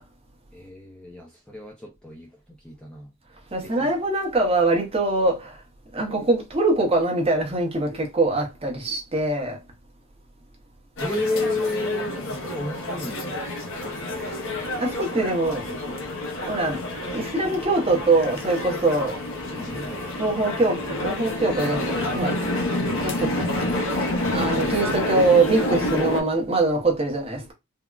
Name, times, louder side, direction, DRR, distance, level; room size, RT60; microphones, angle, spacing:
voice 1, 0.5-3.1 3.6-3.9 11.0-13.3 13.8-14.4 19.8-20.1 22.8-23.0, left 2 dB, 5° left, 0.4 m, -32 dB
voice 2, 3.5-5.6 5.9-9.6 14.8-15.9 16.5-16.8 17.1-19.2 19.5-19.9 20.2-22.5 23.0-23.5 23.8-27.5, right 2 dB, 25° right, 0.7 m, -23 dB
sound 1, 11.0-26.2, left 1 dB, 60° left, 0.6 m, -28 dB
3.4 x 2.0 x 2.3 m
head